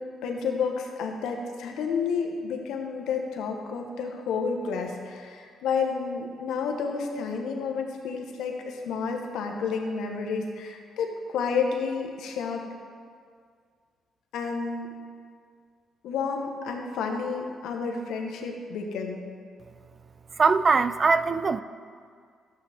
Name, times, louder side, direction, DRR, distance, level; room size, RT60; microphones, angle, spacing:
voice 1, 0.2-12.6 14.3-14.9 16.0-19.2, left 5 dB, 85° left, 2 dB, 1.1 m, -30 dB
voice 2, 20.4-21.6, right 4 dB, 40° right, 13 dB, 0.3 m, -21 dB
12.5 x 7.9 x 3.5 m, 2.1 s
cardioid pair, 90°, 0 cm